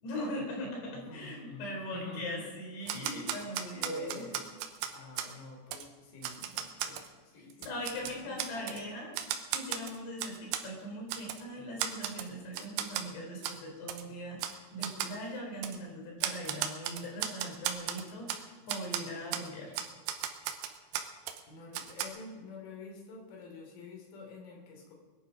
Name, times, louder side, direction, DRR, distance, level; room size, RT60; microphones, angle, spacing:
voice 1, 0.0-4.3 7.4-9.1 9.5-19.7, equal, 75° left, -1 dB, 6.0 m, -40 dB
voice 2, 0.9-2.5 2.8-3.0 3.5-4.4 4.9-8.9 21.5-24.9, left 3 dB, 55° left, 0 dB, 4.4 m, -48 dB
Typewriter, 2.9-5.3 5.7-5.8 6.2-7.1 7.5-8.8 9.1-10.7 11.1-11.4 11.8-12.3 12.5-13.1 13.4-13.6 13.9-14.0 14.4-14.6 14.8-15.1 15.6-15.8 16.2-18.4 18.7-19.0 19.3-19.5 19.7-21.4 21.7-22.1, right 10 dB, 85° right, 3.1 m, -35 dB
21.5 x 11.0 x 5.2 m, 1.3 s
omnidirectional pair, 4.8 m